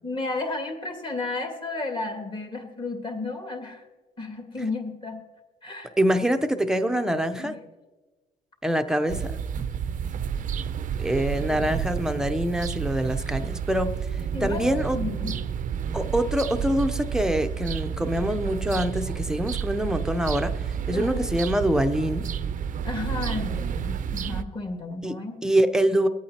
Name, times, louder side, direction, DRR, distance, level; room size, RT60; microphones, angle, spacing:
voice 1, 0.0-3.8 4.2-5.2 5.6-5.9 7.4-7.6 14.3-15.4 20.9-21.3 22.8-25.4, left 3 dB, 30° left, 2 dB, 2.3 m, -33 dB
voice 2, 6.0-7.5 8.6-9.4 11.0-13.9 14.4-15.0 15.9-20.6 20.9-22.3 25.0-25.1 25.4-26.1, right 1 dB, 5° right, 7 dB, 0.7 m, -25 dB
sound 1, 9.1-24.4, right 7 dB, 50° right, 0.6 m, -30 dB
23.5 x 8.5 x 2.9 m, 1.2 s
cardioid pair, 110°, 17 cm